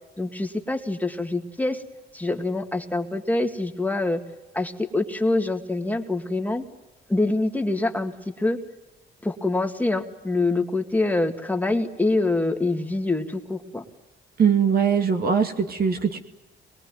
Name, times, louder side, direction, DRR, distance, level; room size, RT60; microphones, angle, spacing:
voice 1, 0.2-1.8 2.1-4.2 4.5-6.6 7.1-8.6 9.2-13.8, left 2 dB, 10° left, 4 dB, 2.2 m, -25 dB
voice 2, 14.4-16.2, right 7 dB, 50° right, 5 dB, 2.5 m, -21 dB
24.0 x 21.5 x 9.4 m, 1.0 s
cardioid pair, 90°, 20 cm